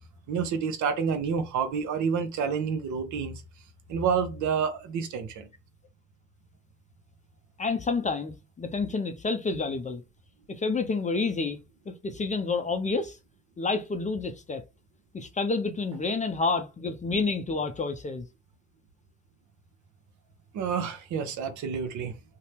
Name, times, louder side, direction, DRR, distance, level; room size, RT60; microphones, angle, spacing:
voice 1, 0.3-3.3 3.9-5.5 20.5-22.2, right 6 dB, 55° right, 0.8 m, -29 dB
voice 2, 7.6-10.0 10.5-11.6 11.9-13.2 13.6-14.6 15.1-18.3, left 4 dB, 20° left, 0.5 m, -29 dB
2.7 x 2.1 x 3.3 m
hypercardioid pair, 60°, 34 cm